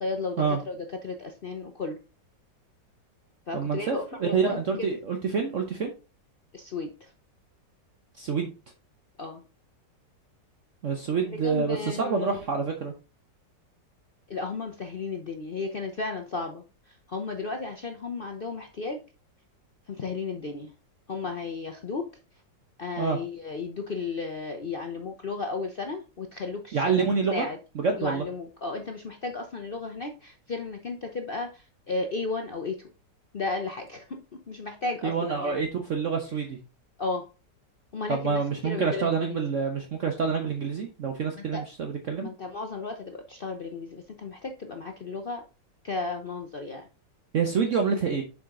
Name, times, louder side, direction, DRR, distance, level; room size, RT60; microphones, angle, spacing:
voice 1, 0.0-2.0 3.5-4.9 6.5-7.1 9.2-9.4 11.2-12.4 14.3-19.0 19.9-20.7 21.1-22.1 22.8-27.6 28.0-32.9 33.3-35.6 37.0-37.3 37.9-39.4 41.4-41.6 42.2-45.4 45.8-46.9, left 3 dB, 55° left, 4 dB, 0.6 m, -34 dB
voice 2, 3.5-5.9 8.2-8.5 10.8-12.9 23.0-23.2 26.7-27.4 27.8-28.2 35.0-36.6 38.1-42.3 47.3-48.2, right 5 dB, 55° right, 4 dB, 1.1 m, -27 dB
7.1 x 5.0 x 3.7 m, 0.32 s
omnidirectional pair, 1.9 m